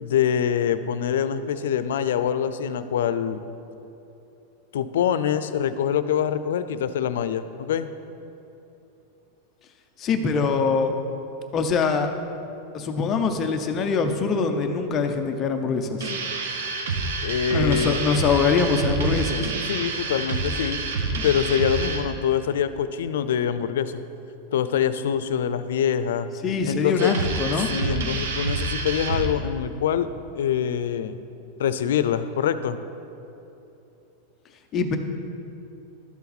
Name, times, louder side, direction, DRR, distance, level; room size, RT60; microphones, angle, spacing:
voice 1, 0.0-3.4 4.7-7.9 17.2-18.0 19.7-20.8 21.2-24.0 24.5-26.3 26.7-27.1 27.6-30.1 30.3-31.2 31.6-32.8, left 8 dB, 80° left, 12 dB, 0.5 m, -24 dB
voice 2, 10.0-10.9 11.5-12.1 12.7-16.1 17.5-19.5 26.4-27.7 34.7-35.0, left 5 dB, 20° left, 5 dB, 0.5 m, -23 dB
sound 1, 16.0-22.0 27.0-29.3, right 3 dB, 75° right, 1.1 m, -28 dB
12.0 x 7.1 x 4.1 m, 2.9 s
supercardioid pair, 180°, 0 cm